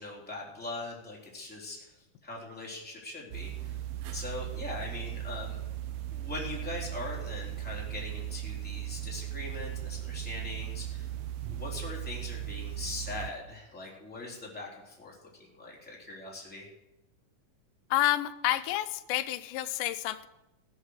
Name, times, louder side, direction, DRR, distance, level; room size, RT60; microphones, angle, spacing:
voice 1, 0.0-1.9 2.2-3.8 4.1-5.6 6.1-11.1 11.5-16.7, left 2 dB, 5° left, -4 dB, 3.1 m, -41 dB
sound 1, 3.3-13.3, right 13 dB, 85° right, 1.3 m, -37 dB
voice 2, 17.9-20.3, left 14 dB, 85° left, 11 dB, 2.3 m, -29 dB
17.0 x 8.1 x 6.5 m, 0.94 s
omnidirectional pair, 3.8 m